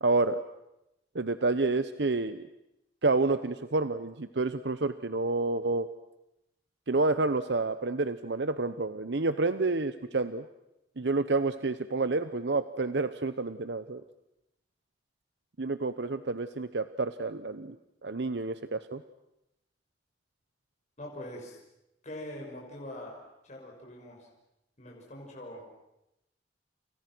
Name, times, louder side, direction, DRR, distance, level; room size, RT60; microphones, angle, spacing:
voice 1, 0.0-0.4 1.1-2.5 3.0-5.9 6.9-10.4 11.0-14.0 15.6-17.8 18.0-19.0, right 3 dB, 80° right, 12 dB, 0.9 m, -29 dB
voice 2, 21.0-21.6 22.0-23.2 23.4-24.2 24.8-25.6, left 1 dB, 40° left, -1 dB, 6.1 m, -43 dB
29.5 x 29.5 x 6.2 m, 0.88 s
head